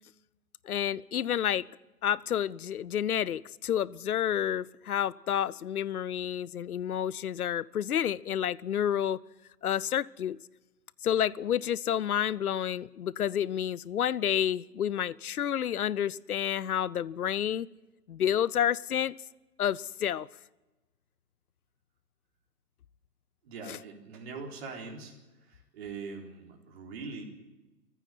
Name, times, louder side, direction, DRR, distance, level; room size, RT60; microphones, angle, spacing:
voice 1, 0.6-1.7 2.0-9.2 9.6-10.4 11.0-17.7 18.1-19.1 19.6-20.3 23.7-23.8, left 10 dB, 65° left, 22 dB, 0.7 m, -29 dB
voice 2, 23.4-25.1 25.5-27.2, right 4 dB, 40° right, 0 dB, 4.0 m, -42 dB
20.5 x 15.0 x 9.2 m, 1.1 s
figure-of-eight pair, 135°, 48 cm